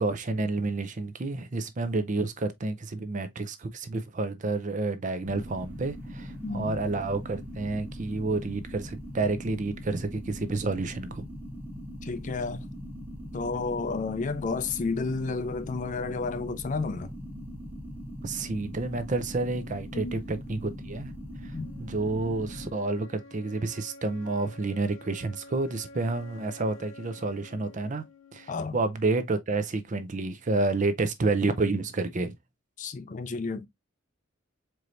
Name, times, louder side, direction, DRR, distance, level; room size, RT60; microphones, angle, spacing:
voice 1, 0.0-11.2 18.2-21.1 21.8-28.0 28.3-32.4, right 3 dB, 40° right, 0.5 m, -29 dB
sound 1, 5.2-22.7, equal, 10° right, 1.1 m, -41 dB
voice 2, 6.4-6.8 12.0-12.6 13.3-17.1 19.9-20.1 21.5-21.7 28.5-28.8 32.8-33.7, left 4 dB, 40° left, 0.4 m, -31 dB
sound 2, 21.1-29.0, left 2 dB, 90° left, 0.8 m, -50 dB
4.5 x 3.1 x 2.5 m
head